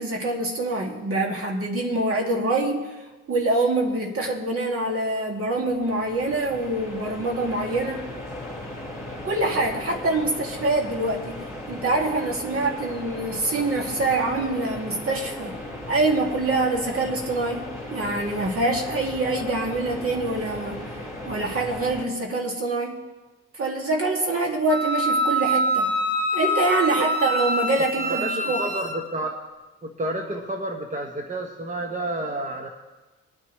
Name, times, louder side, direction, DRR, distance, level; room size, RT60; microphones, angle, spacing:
voice 1, 0.0-2.9 3.3-8.1 9.2-11.4 11.7-15.6 15.9-20.9 21.3-23.0 23.5-25.9 26.3-28.6, right 2 dB, 50° right, 0 dB, 2.3 m, -25 dB
sound 1, 5.4-22.1, left 1 dB, 10° right, 3.5 m, -37 dB
Wind instrument woodwind instrument, 24.7-29.0, right 1 dB, 25° left, 2.3 m, -25 dB
voice 2, 28.0-29.4 29.8-32.7, right 2 dB, 25° right, 3 dB, 1.1 m, -30 dB
22.0 x 9.6 x 3.2 m, 1.2 s
cardioid pair, 90°, 30 cm